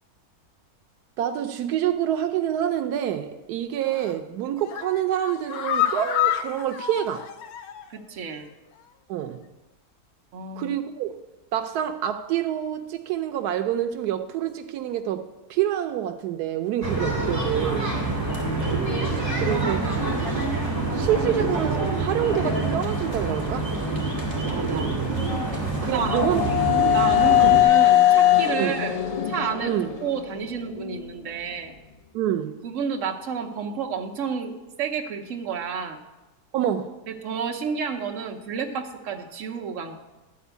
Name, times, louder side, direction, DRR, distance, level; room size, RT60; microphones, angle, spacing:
voice 1, 1.2-7.3 9.1-9.4 10.6-11.2 11.5-17.9 19.4-19.9 20.9-23.7 25.8-26.4 27.3-27.5 28.6-28.8 29.6-29.9 32.1-32.6 36.5-36.9, right 11 dB, 85° right, 6 dB, 1.1 m, -27 dB
sound 1, 3.8-4.2 4.6-8.0 8.3-8.4 8.8-8.9, left 11 dB, 75° left, 1.1 m, -28 dB
voice 2, 7.9-8.5 10.3-10.7 17.9-18.2 19.4-20.1 24.4-24.9 25.8-26.3 26.9-29.0 29.2-31.7 32.6-36.0 37.1-39.9, right 6 dB, 55° right, 2 dB, 1.2 m, -31 dB
sound 2, 16.8-27.6, right 2 dB, 15° right, 2.1 m, -26 dB
sound 3, 25.1-31.0, left 13 dB, 55° left, 0.4 m, -21 dB
12.0 x 4.3 x 8.1 m, 1.1 s
omnidirectional pair, 1.7 m